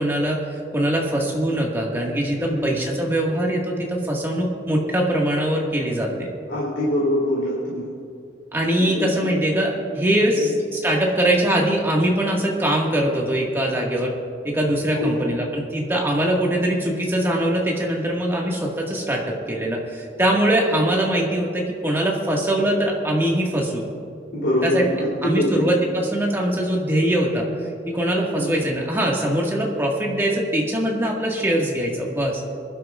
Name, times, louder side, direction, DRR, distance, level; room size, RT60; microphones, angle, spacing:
voice 1, 0.0-6.3 8.5-14.2 14.4-23.8 24.6-24.8 25.2-27.5 27.9-32.4, right 1 dB, 15° right, -2 dB, 1.7 m, -22 dB
voice 2, 2.4-2.7 6.5-7.9 8.8-9.3 10.4-10.5 14.9-15.2 24.3-25.6 28.3-28.5, left 1 dB, 75° left, -7 dB, 3.2 m, -24 dB
23.0 x 12.0 x 2.5 m, 2.4 s
head